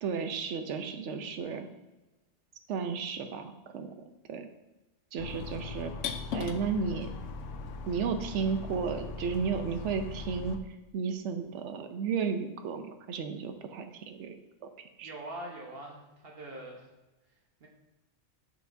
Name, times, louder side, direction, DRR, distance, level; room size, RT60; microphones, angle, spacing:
voice 1, 0.0-1.7 2.7-3.9 4.3-4.5 5.1-5.9 6.3-7.1 7.9-14.7 15.0-15.1, right 6 dB, 75° right, 7 dB, 0.9 m, -33 dB
sound 1, 5.2-10.6, left 4 dB, 85° left, 0.9 m, -39 dB
voice 2, 15.0-16.9 17.6-17.7, right 1 dB, 55° right, -1 dB, 1.2 m, -43 dB
6.7 x 6.0 x 2.6 m, 1.1 s
omnidirectional pair, 1.2 m